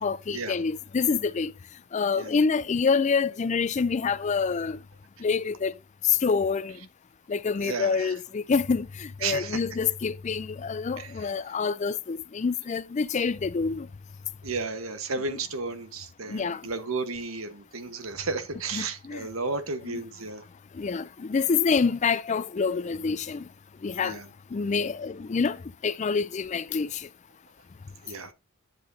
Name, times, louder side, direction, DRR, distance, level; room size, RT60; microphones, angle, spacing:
voice 1, 0.0-1.5 1.9-4.8 5.2-5.7 6.1-6.8 7.3-13.9 15.3-15.4 16.3-16.6 18.7-19.3 19.9-20.0 20.8-23.4 23.8-24.2 24.5-25.6 25.8-27.0, left 5 dB, 35° left, 0.4 m, -27 dB
voice 2, 7.6-8.1 9.2-9.6 11.0-11.1 14.4-20.4 24.0-24.3 28.0-28.3, right 4 dB, 80° right, 1.2 m, -33 dB
10.5 x 7.7 x 2.7 m
head